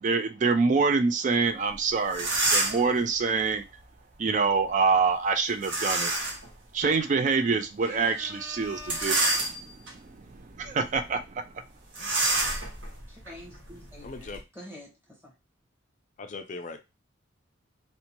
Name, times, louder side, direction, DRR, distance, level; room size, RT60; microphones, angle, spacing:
voice 1, 0.0-3.6 4.2-6.1 6.7-9.1 10.6-11.2 12.0-12.2, right 4 dB, 40° right, 9 dB, 0.3 m, -25 dB
sound 1, 1.7-1.8 2.1-2.9 5.6-6.5 7.0-7.1 8.8-9.9 10.5-10.7 10.9-11.1 11.9-14.4, right 2 dB, 60° right, 0.8 m, -28 dB
voice 2, 7.8-9.4 13.1-15.3, left 1 dB, 10° right, -2 dB, 1.0 m, -45 dB
voice 3, 14.0-14.4 16.2-16.8, left 3 dB, 40° left, 7 dB, 0.4 m, -39 dB
2.7 x 2.2 x 2.9 m, 0.24 s
head